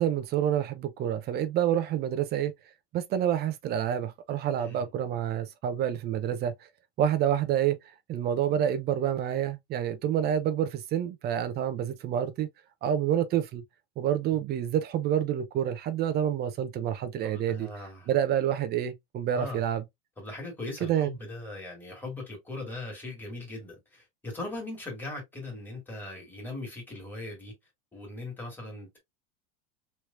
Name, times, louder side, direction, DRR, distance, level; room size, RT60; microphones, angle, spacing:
voice 1, 0.0-2.5 2.9-6.5 7.0-7.8 8.1-12.5 12.8-13.6 14.0-17.7 18.1-19.8 20.8-21.2, right 10 dB, 30° right, 0.6 m, -28 dB
voice 2, 4.6-4.9 17.2-18.1 19.3-19.6 20.2-27.5 27.9-29.0, left 2 dB, 5° left, 1.8 m, -39 dB
3.3 x 3.0 x 2.4 m
supercardioid pair, 135°, 31 cm